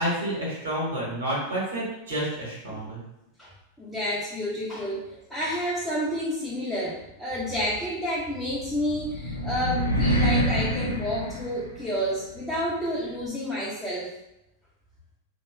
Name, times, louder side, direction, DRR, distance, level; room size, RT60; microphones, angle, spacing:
voice 1, 0.0-3.0, right 1 dB, 65° right, -5 dB, 0.9 m, -29 dB
voice 2, 3.8-14.1, equal, 5° left, -9 dB, 0.5 m, -30 dB
sound 1, 8.6-12.1, equal, 80° left, 0.4 m, -26 dB
2.7 x 2.1 x 2.2 m, 0.86 s
figure-of-eight pair, 90°, 0 cm